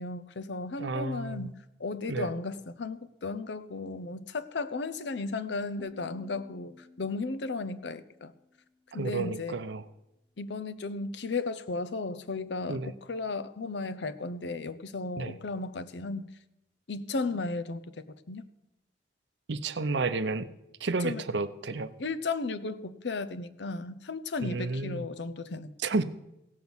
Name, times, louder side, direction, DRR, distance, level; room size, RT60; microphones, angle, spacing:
voice 1, 0.0-8.3 8.9-9.6 10.4-16.3 16.9-18.4 21.0-21.2 22.0-25.7, left 3 dB, 75° left, 0.7 m, -35 dB
voice 2, 0.8-1.5 2.1-2.3 8.9-9.8 12.7-12.9 15.1-15.3 19.5-20.5 20.8-21.9 24.4-25.0 25.8-26.0, right 3 dB, 75° right, 0.7 m, -31 dB
sound 1, 5.8-8.8, left 3 dB, 10° right, 3.2 m, -54 dB
16.5 x 6.1 x 7.1 m
head